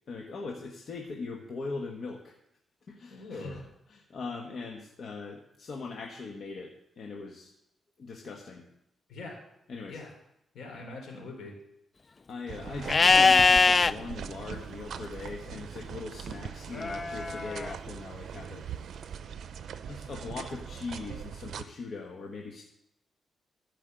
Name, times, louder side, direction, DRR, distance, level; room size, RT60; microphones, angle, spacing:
voice 1, 0.1-2.3 2.9-3.6 3.9-7.5 8.0-8.6 9.7-10.0 12.3-18.7 19.9-22.6, left 4 dB, 55° left, 0 dB, 1.3 m, -40 dB
voice 2, 3.1-3.6 9.1-9.4 9.9-10.1 10.5-11.5 12.6-12.9, left 3 dB, 80° left, 0 dB, 4.1 m, -42 dB
sound 1, 12.5-21.6, right 8 dB, 70° right, 0.7 m, -41 dB
Livestock farm animals working animals, 12.9-13.9 16.8-17.7, left 4 dB, 30° left, 0.3 m, -21 dB
14.0 x 5.5 x 7.8 m, 0.80 s
cardioid pair, 115°, 0 cm